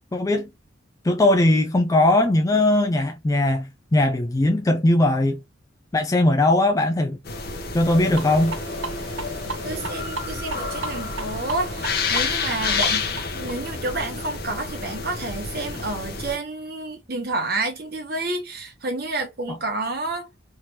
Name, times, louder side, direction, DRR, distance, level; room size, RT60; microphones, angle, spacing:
voice 1, 0.1-0.5 1.0-5.4 5.9-7.2 7.7-8.6 19.5-19.6, left 1 dB, 20° left, 0.3 m, -19 dB
sound 1, 7.3-16.4, left 4 dB, 50° left, 0.8 m, -29 dB
sound 2, 8.2-13.5, right 4 dB, 80° right, 0.7 m, -36 dB
voice 2, 9.6-20.3, right 2 dB, 55° right, 1.2 m, -29 dB
3.3 x 2.9 x 2.9 m
head